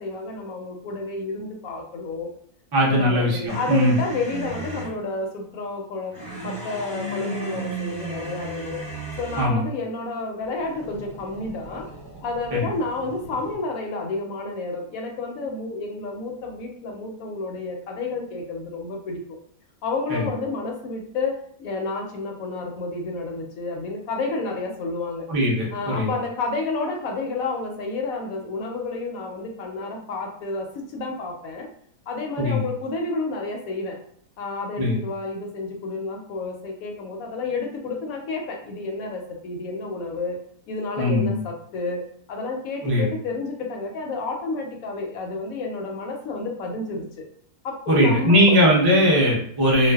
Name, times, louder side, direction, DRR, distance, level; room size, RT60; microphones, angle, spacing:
voice 1, 0.0-2.3 2.9-8.9 9.2-11.9 12.2-19.2 19.8-25.3 25.7-31.7 32.1-34.0 34.4-40.4 40.7-47.3 47.6-48.6, left 3 dB, 75° left, 2 dB, 1.0 m, -30 dB
voice 2, 2.7-3.9 9.4-9.6 12.5-12.6 20.1-20.2 25.3-26.1 32.4-32.6 34.8-35.0 41.0-41.4 42.8-43.0 47.9-49.9, equal, 35° right, -4 dB, 0.3 m, -19 dB
sound 1, 3.5-5.0 6.1-9.6 10.5-13.6, right 2 dB, 15° right, 1.0 m, -35 dB
2.5 x 2.2 x 2.3 m, 0.63 s
omnidirectional pair, 1.6 m